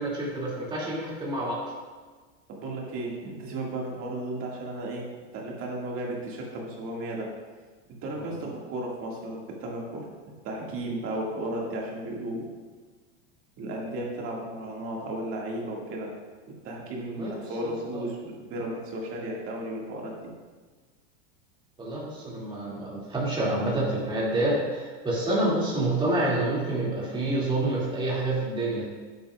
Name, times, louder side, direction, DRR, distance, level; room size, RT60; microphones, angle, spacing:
voice 1, 0.0-1.7 8.1-8.4 17.1-17.3 17.6-18.0 21.8-28.9, right 2 dB, 10° right, -5 dB, 2.3 m, -28 dB
voice 2, 2.5-7.3 8.0-10.1 10.4-12.5 13.6-16.1 16.5-20.1, right 1 dB, 35° right, -2 dB, 2.0 m, -34 dB
10.0 x 8.3 x 2.4 m, 1.4 s
supercardioid pair, 145°, 38 cm